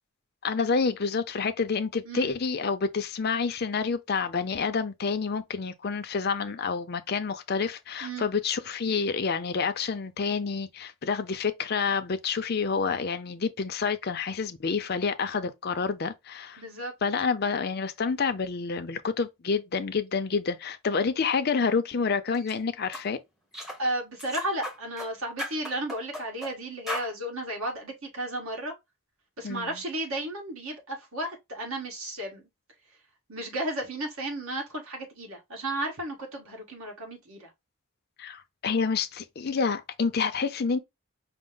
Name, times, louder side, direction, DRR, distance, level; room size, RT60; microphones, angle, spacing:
voice 1, 0.4-16.6 17.0-23.2 29.4-29.8 38.2-40.8, left 5 dB, 45° left, 0.5 m, -28 dB
voice 2, 16.6-16.9 23.8-28.7 29.4-32.4 33.3-37.5, right 1 dB, 70° right, 1.5 m, -33 dB
sound 1, 22.3-22.5 22.9-23.1 23.5-23.8 24.2-25.1 25.4-26.5 26.9-27.1, equal, ahead, 0.7 m, -36 dB
5.1 x 2.0 x 3.7 m
head